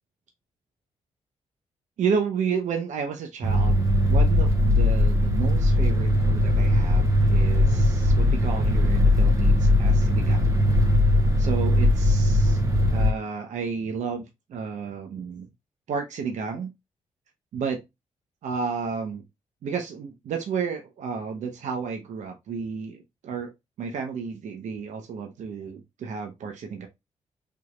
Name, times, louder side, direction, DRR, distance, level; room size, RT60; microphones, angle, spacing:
voice 1, 2.0-10.5 11.4-15.5 15.9-16.7 17.5-17.8 18.4-19.2 19.6-23.5 23.8-26.9, right 6 dB, 80° right, 0.9 m, -32 dB
sound 1, 3.4-13.1, left 1 dB, 25° right, 1.1 m, -20 dB
4.8 x 3.0 x 2.4 m
cardioid pair, 85°, 12 cm